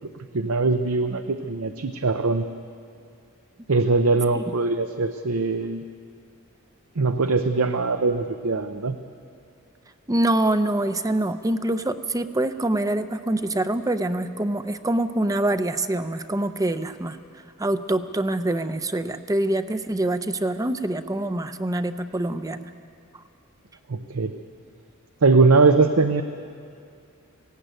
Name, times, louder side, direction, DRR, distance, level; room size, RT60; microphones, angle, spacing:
voice 1, 0.3-2.5 3.7-5.8 7.0-9.0 23.9-24.3 25.2-26.2, right 3 dB, 75° right, 8 dB, 0.7 m, -21 dB
voice 2, 10.1-17.2 17.6-22.7, right 1 dB, 15° right, 10 dB, 0.7 m, -25 dB
18.5 x 16.5 x 9.1 m, 2.3 s
head